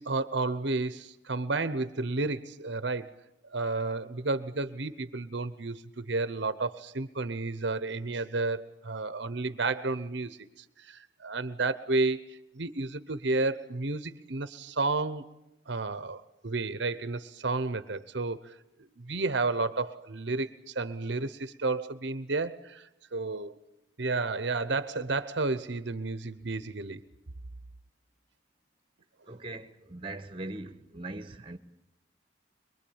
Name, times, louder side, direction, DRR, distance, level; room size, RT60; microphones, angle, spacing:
voice 1, 0.0-3.1 3.5-15.2 15.7-18.5 19.0-23.6 24.0-27.0, right 3 dB, 60° right, 0.9 m, -32 dB
voice 2, 29.3-31.6, right 2 dB, 25° right, 1.2 m, -40 dB
23.0 x 23.0 x 8.7 m
head